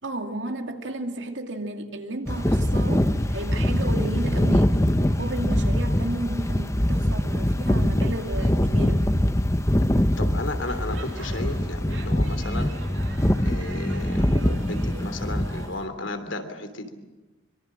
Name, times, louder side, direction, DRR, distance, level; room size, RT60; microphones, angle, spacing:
voice 1, 0.0-9.1, right 1 dB, 70° right, 5 dB, 2.5 m, -33 dB
sound 1, 2.3-15.7, left 1 dB, 15° left, 1.0 m, -23 dB
voice 2, 9.9-12.8 13.4-16.9, left 2 dB, 80° left, 8 dB, 3.2 m, -34 dB
Speech / Shout / Subway metro underground, 10.6-15.9, right 3 dB, 85° right, 2.9 m, -43 dB
24.5 x 24.0 x 7.6 m, 1.1 s
head